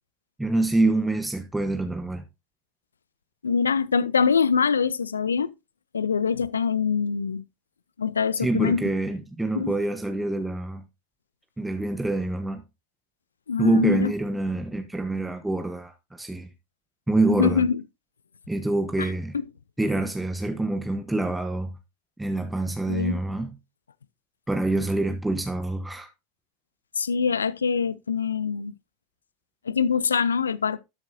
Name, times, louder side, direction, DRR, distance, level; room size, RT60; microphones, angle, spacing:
voice 1, 0.4-2.3 8.4-10.9 11.6-12.6 13.6-16.5 17.1-17.6 18.5-19.4 19.8-21.7 22.2-23.5 24.5-26.1, right 2 dB, 10° right, 1.1 m, -26 dB
voice 2, 3.4-5.5 5.9-7.4 8.0-8.8 9.5-9.8 13.5-14.1 17.3-17.8 19.0-19.1 22.9-23.2 27.0-28.7 29.6-30.8, left 6 dB, 80° left, 0.5 m, -24 dB
12.5 x 7.7 x 2.7 m
figure-of-eight pair, 80°, 0 cm